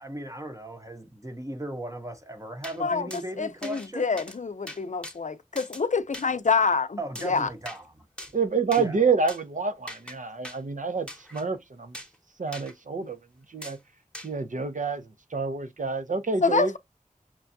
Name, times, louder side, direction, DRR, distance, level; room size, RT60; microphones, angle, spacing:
voice 1, 0.0-4.2 7.0-8.0 8.8-9.0, right 1 dB, 25° right, 0.8 m, -37 dB
sound 1, 2.6-2.8 3.1-3.2 3.6-3.9 4.2-4.4 4.7-5.2 5.6-5.8 6.1-6.3 7.2-7.8 8.2-8.4 8.7-8.9 9.3-9.4 9.9-10.2 10.4-10.6 11.1-11.4 11.9-12.2 12.5-12.7 13.6-13.8 14.1-14.3, equal, 5° left, 1.0 m, -41 dB
voice 2, 3.4-7.5 16.4-16.8, left 4 dB, 65° left, 0.5 m, -26 dB
voice 3, 8.3-12.0 12.4-13.2 13.5-13.8 14.2-16.7, right 5 dB, 70° right, 0.6 m, -28 dB
5.9 x 2.3 x 2.6 m
wide cardioid pair, 40°, 14 cm